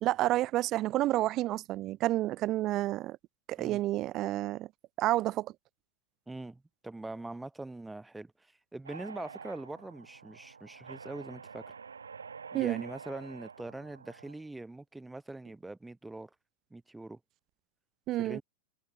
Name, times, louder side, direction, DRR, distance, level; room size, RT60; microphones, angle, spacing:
voice 1, 0.0-3.2 3.5-4.7 5.0-5.5 12.5-12.8 18.1-18.4, right 15 dB, 35° right, 0.3 m, -30 dB
voice 2, 6.3-8.3 8.7-11.7 12.5-16.3 16.7-17.2 18.2-18.4, right 2 dB, 5° right, 4.3 m, -43 dB
sound 1, 8.9-14.4, right 5 dB, 75° right, 6.4 m, -48 dB
figure-of-eight pair, 90°, 0 cm